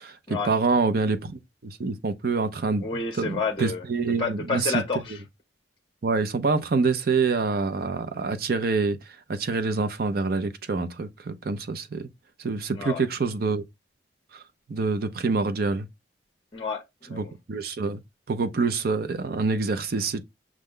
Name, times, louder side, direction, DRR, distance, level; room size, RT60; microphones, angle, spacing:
voice 1, 0.4-2.9 3.2-4.8 6.0-9.0 9.3-12.1 12.4-13.6 14.3-14.4 14.7-15.9 17.1-18.0 18.3-20.2, right 4 dB, 55° right, 0.5 m, -26 dB
voice 2, 2.8-5.2 12.7-13.0 16.5-17.3, left 4 dB, 30° left, 0.6 m, -30 dB
6.0 x 2.2 x 3.6 m
head